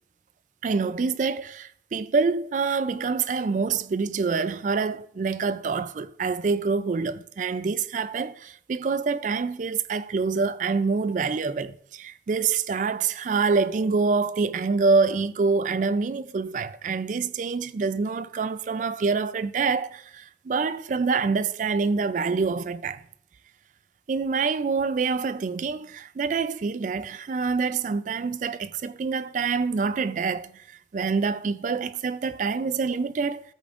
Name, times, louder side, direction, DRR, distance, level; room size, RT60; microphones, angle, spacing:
voice 1, 0.6-23.0 24.1-33.4, right 4 dB, 45° right, 0.3 m, -26 dB
13.5 x 8.5 x 2.5 m
head